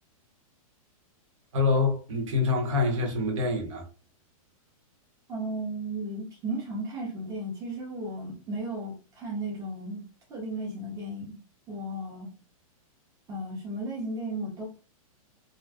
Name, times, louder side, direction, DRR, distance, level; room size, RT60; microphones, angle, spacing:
voice 1, 1.5-3.8, left 3 dB, 60° right, 1.1 m, -26 dB
voice 2, 5.3-10.0 10.3-11.4 11.7-12.3 13.3-14.7, right 1 dB, 15° right, 0.8 m, -35 dB
2.5 x 2.3 x 3.4 m
hypercardioid pair, 155°, 18 cm